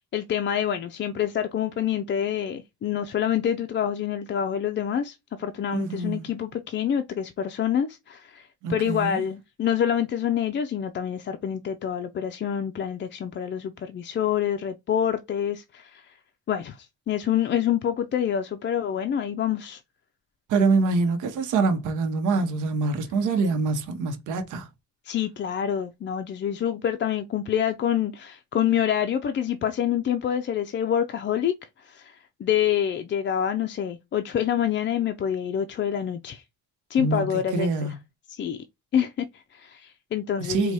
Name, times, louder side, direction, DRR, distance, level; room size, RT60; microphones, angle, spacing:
voice 1, 0.1-16.1 16.5-19.8 25.0-36.4 36.9-37.9 38.3-38.6 38.9-40.7, left 9 dB, 40° left, 0.4 m, -27 dB
voice 2, 5.7-6.2 8.6-9.2 20.5-24.7 37.0-37.9 40.4-40.7, right 4 dB, 85° right, 0.9 m, -25 dB
4.5 x 2.3 x 2.8 m
cardioid pair, 90°, 30 cm